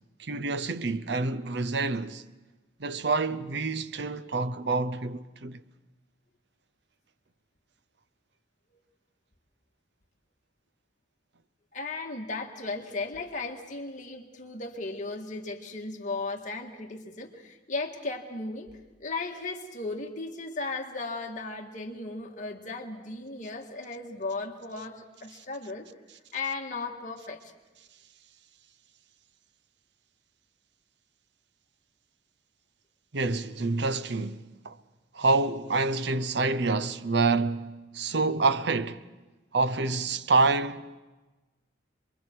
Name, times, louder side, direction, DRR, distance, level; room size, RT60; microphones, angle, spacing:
voice 1, 0.2-2.2 2.8-5.6 33.1-34.8 35.1-39.0 39.5-41.0, right 3 dB, 60° right, 0.7 m, -27 dB
voice 2, 11.7-18.7 19.0-25.9 26.3-27.5, left 3 dB, 40° left, 1.9 m, -36 dB
27.5 x 22.0 x 4.7 m
head